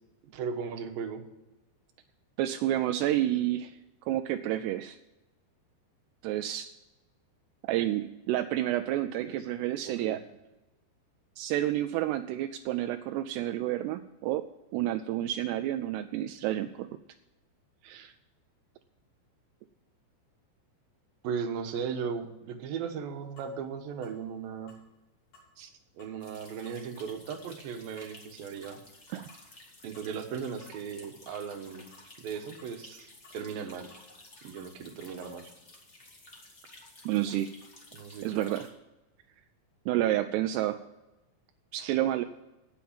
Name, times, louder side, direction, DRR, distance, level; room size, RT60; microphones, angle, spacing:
voice 1, 0.2-1.2 9.2-9.4 9.8-10.2 21.2-24.7 26.0-28.8 29.8-31.8 32.2-33.9 34.4-35.5 37.9-38.5 41.8-41.9, right 6 dB, 65° right, 6 dB, 2.6 m, -37 dB
voice 2, 2.4-5.0 6.2-6.7 7.6-10.2 11.4-14.5 14.7-16.9 17.8-18.1 25.6-25.7 29.1-29.3 37.1-37.5 38.2-38.7 39.9-40.8 41.7-42.2, right 13 dB, 85° right, 8 dB, 2.4 m, -30 dB
sound 1, 23.4-23.5 24.0-24.2 24.7-24.9 25.3-25.5 26.0-26.2 26.7-26.8 27.3-27.5 28.0-28.2 28.6-28.8 29.3-29.5 30.0-30.3 30.6-30.8 31.3-31.5 31.9-32.1 32.6-32.8 33.2-33.4 33.9-34.1 34.6-34.7 35.2-35.4, left 2 dB, 55° left, 6.5 m, -58 dB
sound 2, 26.2-38.7, left 2 dB, 80° left, 0.6 m, -53 dB
17.5 x 6.0 x 7.3 m, 1.0 s
omnidirectional pair, 5.3 m